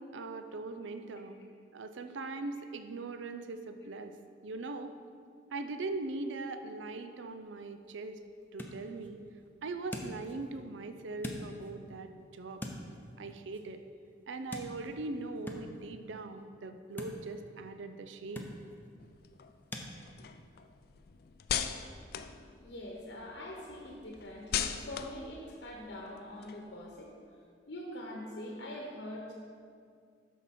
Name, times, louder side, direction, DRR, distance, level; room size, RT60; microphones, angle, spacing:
voice 1, 0.0-1.4 1.7-4.2 4.4-4.9 5.5-8.2 8.5-9.2 9.6-12.6 13.2-13.8 14.3-18.5, right 3 dB, 85° right, 8 dB, 0.5 m, -40 dB
sound 1, 7.4-19.9, equal, 10° left, 0.6 m, -47 dB
sound 2, 19.0-23.2 23.5-27.0, left 8 dB, 55° left, 0.4 m, -39 dB
voice 2, 22.6-27.2 27.7-29.3, left 1 dB, 70° left, -2 dB, 1.0 m, -43 dB
12.0 x 4.6 x 4.2 m, 2.2 s
head